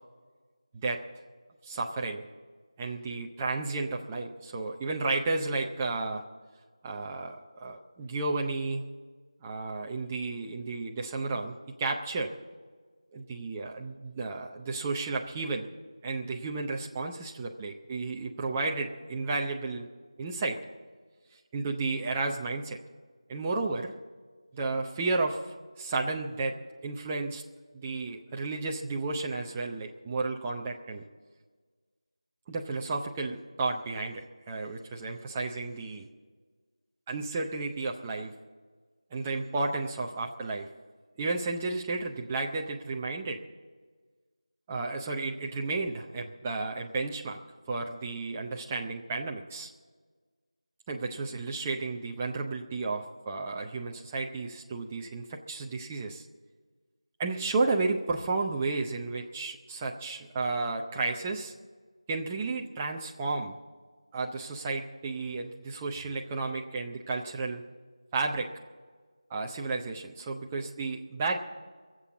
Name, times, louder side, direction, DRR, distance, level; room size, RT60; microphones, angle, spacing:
voice 1, 1.6-2.3 2.8-6.2 6.8-8.8 9.4-12.3 13.1-15.7 16.0-19.9 20.2-20.6 21.5-22.8 23.3-23.9 24.5-26.6 26.8-27.4 27.7-31.0 32.5-36.1 37.1-38.3 39.1-40.7 41.2-43.4 44.7-47.4 47.7-49.7 50.9-56.2 57.2-61.5 62.1-63.6 64.1-67.6 68.1-68.5 69.3-71.4, right 3 dB, 10° right, 0 dB, 0.6 m, -32 dB
22.0 x 7.6 x 8.1 m, 1.5 s
figure-of-eight pair, 170°, 3 cm